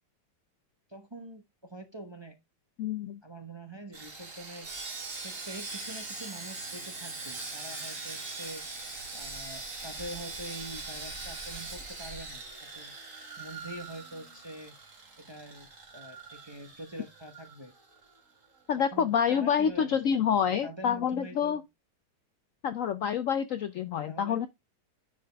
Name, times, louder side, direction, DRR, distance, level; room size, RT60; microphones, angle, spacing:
voice 1, 0.9-2.4 3.2-4.7 5.2-8.9 9.1-12.9 13.4-15.7 15.9-17.7 18.9-21.6 24.1-24.4, right 1 dB, 20° right, 0.8 m, -45 dB
voice 2, 2.8-3.2 18.7-21.6 22.6-24.5, left 8 dB, 65° left, 0.8 m, -27 dB
Sawing, 3.9-18.2 18.4-18.6 19.1-19.2, right 3 dB, 50° right, 2.4 m, -41 dB
10.0 x 5.1 x 3.4 m
omnidirectional pair, 1.9 m